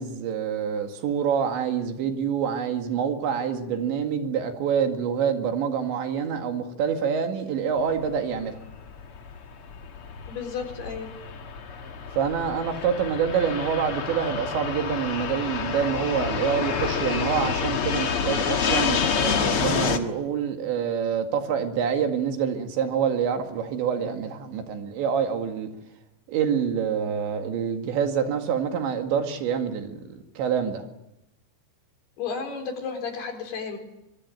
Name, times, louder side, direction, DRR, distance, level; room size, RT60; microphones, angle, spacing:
voice 1, 0.0-8.6 12.2-25.7 26.3-30.9, right 7 dB, 70° right, 4.2 m, -26 dB
Fixed-wing aircraft airplane, 7.8-20.0, left 6 dB, 80° left, 1.2 m, -28 dB
voice 2, 10.3-11.1 32.2-33.8, left 5 dB, 60° left, 6.0 m, -32 dB
24.5 x 24.0 x 9.2 m
omnidirectional pair, 5.5 m